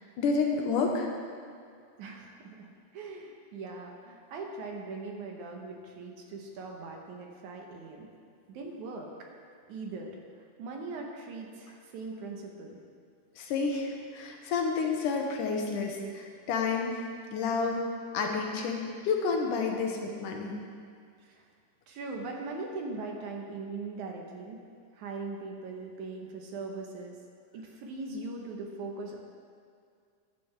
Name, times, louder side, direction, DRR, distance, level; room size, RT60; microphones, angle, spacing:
voice 1, 0.2-1.1 13.4-17.0 17.3-17.9 18.1-20.6, left 4 dB, 80° left, 1 dB, 2.6 m, -30 dB
voice 2, 2.0-2.7 2.9-8.1 8.5-9.1 9.7-10.2 10.6-12.8 21.2-21.5 21.9-24.6 24.9-27.2 27.5-29.2, right 3 dB, 70° right, 1 dB, 2.4 m, -40 dB
13.5 x 11.0 x 3.4 m, 2.2 s
omnidirectional pair, 3.7 m